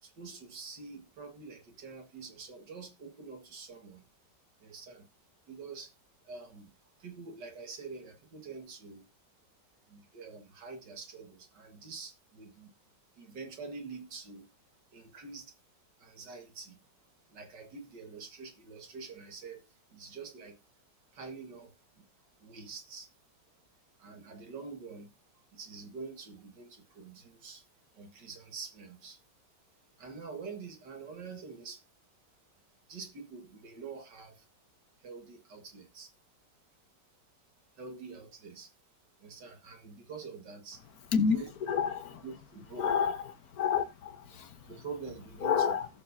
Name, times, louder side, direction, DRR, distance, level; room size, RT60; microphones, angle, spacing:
voice 1, 0.0-4.1 4.6-5.1 5.5-5.9 6.2-9.0 9.9-12.7 13.1-14.5 14.9-15.5 16.0-16.8 17.3-20.6 21.1-22.1 22.4-23.1 24.0-27.7 27.9-29.2 30.0-31.8 32.9-34.5 35.0-36.1 37.7-38.7 39.2-41.5 42.2-42.9 44.6-45.7, right 4 dB, 75° right, 2.4 m, -46 dB
voice 2, 41.1-42.2 42.8-43.2 43.5-44.7 45.4-45.9, left 6 dB, 60° left, 1.5 m, -29 dB
19.0 x 6.8 x 2.7 m
omnidirectional pair, 1.9 m